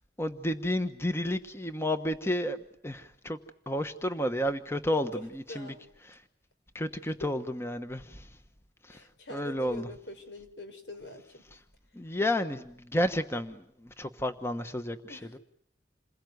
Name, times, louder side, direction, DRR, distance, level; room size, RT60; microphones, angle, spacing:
voice 1, 0.2-2.6 2.8-3.4 3.7-5.7 6.0-6.2 6.7-8.3 8.8-9.0 9.3-9.9 11.5-11.6 11.9-15.4, left 1 dB, 15° left, 9 dB, 1.2 m, -31 dB
voice 2, 4.9-5.2 5.5-5.9 7.2-7.3 8.9-11.4 15.1-15.3, left 1 dB, 85° left, 8 dB, 4.5 m, -43 dB
28.0 x 21.5 x 9.5 m, 0.70 s
head